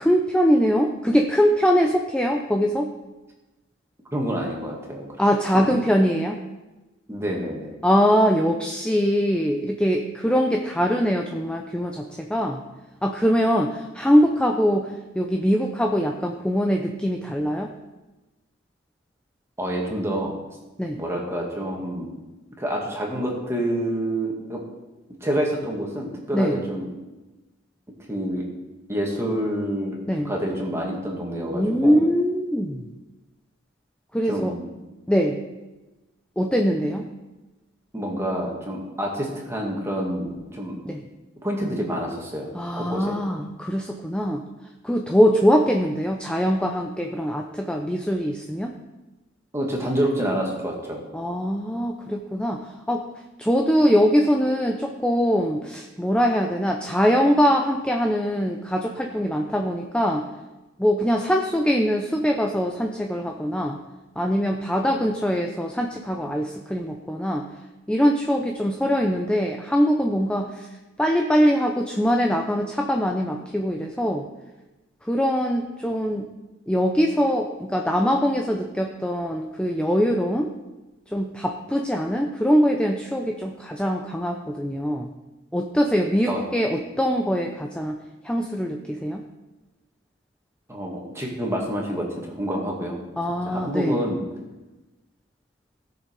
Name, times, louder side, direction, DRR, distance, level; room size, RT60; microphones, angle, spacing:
voice 1, 0.0-2.9 5.2-6.4 7.8-12.6 13.0-14.9 15.2-17.7 20.8-21.0 26.3-26.6 30.1-30.3 31.5-32.8 34.1-34.6 35.1-35.4 36.4-37.0 40.9-41.0 42.5-44.4 44.8-48.7 51.1-52.6 52.9-53.0 53.4-60.2 60.8-63.8 64.2-67.4 67.9-70.7 71.0-74.2 75.1-76.2 76.7-80.5 81.1-85.1 85.5-88.0 88.2-89.2 93.2-93.9, equal, 5° left, 2 dB, 0.6 m, -22 dB
voice 2, 4.1-5.1 5.5-5.8 7.1-7.8 19.6-20.3 20.9-22.1 22.6-24.6 25.2-26.8 28.1-28.4 28.9-32.0 34.2-34.7 37.9-40.8 41.4-42.5 42.8-43.2 49.5-51.0 86.3-86.4 90.7-93.0 93.5-94.2, equal, 15° right, -1 dB, 2.2 m, -27 dB
17.0 x 6.7 x 4.8 m, 1.1 s
head